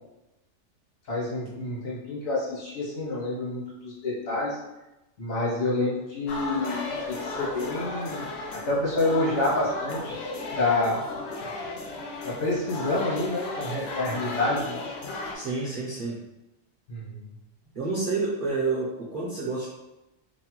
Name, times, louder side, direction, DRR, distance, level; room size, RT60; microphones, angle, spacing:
voice 1, 1.1-4.6 5.2-8.3 8.7-10.2 10.6-11.0 12.2-14.8 16.9-17.2, left 2 dB, 80° left, -5 dB, 1.4 m, -28 dB
sound 1, 6.3-15.3, left 2 dB, 65° left, 0.7 m, -35 dB
voice 2, 15.3-16.2 17.7-19.7, right 3 dB, 55° right, -6 dB, 0.6 m, -29 dB
2.9 x 2.1 x 2.9 m, 0.97 s
omnidirectional pair, 1.4 m